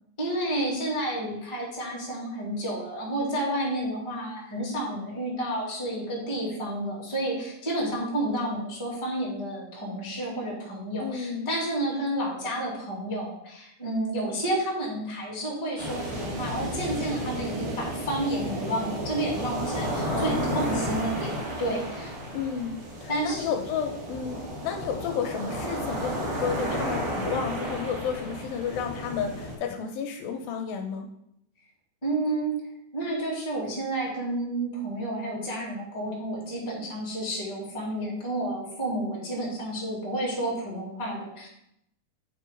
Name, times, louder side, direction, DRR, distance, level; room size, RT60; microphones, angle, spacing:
voice 1, 0.2-22.1 23.1-23.5 32.0-32.5 32.9-41.5, right 1 dB, 10° left, -4 dB, 1.5 m, -30 dB
voice 2, 11.0-11.5 20.1-20.6 22.3-31.1, left 7 dB, 80° left, 4 dB, 2.3 m, -32 dB
sound 1, 15.8-29.5, equal, 75° right, 3.7 m, -32 dB
8.8 x 3.8 x 5.0 m, 0.78 s
omnidirectional pair, 4.3 m